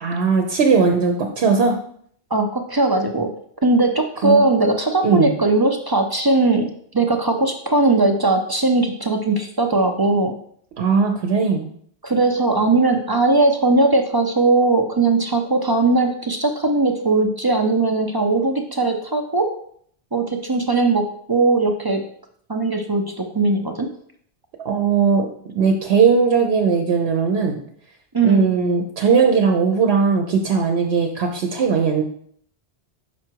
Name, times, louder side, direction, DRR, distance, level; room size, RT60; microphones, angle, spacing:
voice 1, 0.0-1.8 4.2-4.4 5.0-5.3 10.8-11.7 24.6-25.3 25.5-27.6 28.2-32.0, right 5 dB, 70° right, 2 dB, 1.0 m, -18 dB
voice 2, 2.3-3.3 3.6-10.3 12.0-19.5 20.1-22.0 22.5-23.9 28.1-28.5, right 2 dB, 30° right, 4 dB, 0.4 m, -19 dB
6.0 x 4.8 x 4.5 m, 0.63 s
omnidirectional pair, 1.1 m